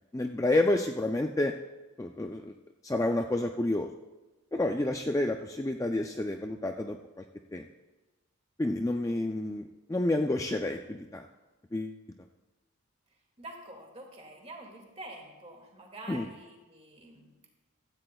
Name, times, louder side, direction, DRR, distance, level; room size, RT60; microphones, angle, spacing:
voice 1, 0.1-1.5 2.0-2.5 2.8-3.9 4.5-7.2 7.5-7.6 8.6-11.3 11.7-12.0 16.1-16.3, left 2 dB, 15° left, 4 dB, 0.3 m, -29 dB
voice 2, 13.4-17.5, right 1 dB, 30° right, 1 dB, 2.0 m, -47 dB
15.5 x 14.0 x 2.3 m, 1.2 s
head